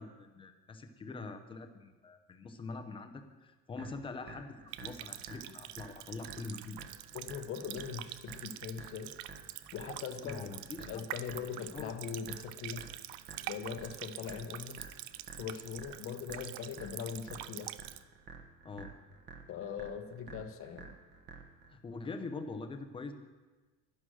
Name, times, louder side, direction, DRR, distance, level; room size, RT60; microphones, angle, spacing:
voice 1, 0.0-6.8 10.2-11.1 11.7-11.9 18.6-18.9 21.7-23.1, left 3 dB, 15° left, 6 dB, 0.7 m, -44 dB
sound 1, 3.8-21.8, right 4 dB, 30° right, 1.2 m, -52 dB
Water tap faucet, 4.7-18.0, right 15 dB, 80° right, 0.6 m, -46 dB
voice 2, 7.1-9.1 9.7-10.5 10.8-12.9 13.4-14.8 15.4-17.7 19.5-20.9, left 7 dB, 35° left, 8 dB, 1.0 m, -41 dB
sound 2, 11.8-15.4, left 8 dB, 65° left, 1.2 m, -57 dB
11.5 x 11.0 x 6.3 m, 1.3 s
cardioid pair, 170°, 38 cm